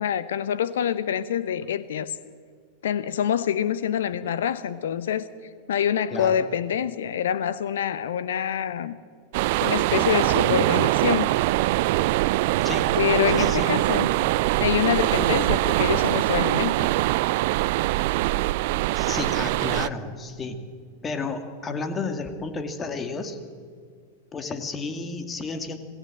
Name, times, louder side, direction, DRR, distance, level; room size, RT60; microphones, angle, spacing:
voice 1, 0.0-2.2 2.8-5.2 5.7-9.0 9.6-11.3 13.0-14.1 14.6-16.9, left 9 dB, 60° left, 16 dB, 0.8 m, -26 dB
voice 2, 6.1-6.5 12.6-12.9 13.3-13.7 18.9-20.6 21.0-23.4 24.3-25.8, left 3 dB, 20° left, 8 dB, 2.5 m, -32 dB
sound 1, 9.3-19.9, right 18 dB, 50° right, 0.5 m, -23 dB
26.5 x 18.0 x 7.6 m, 2.1 s
figure-of-eight pair, 90°, 0 cm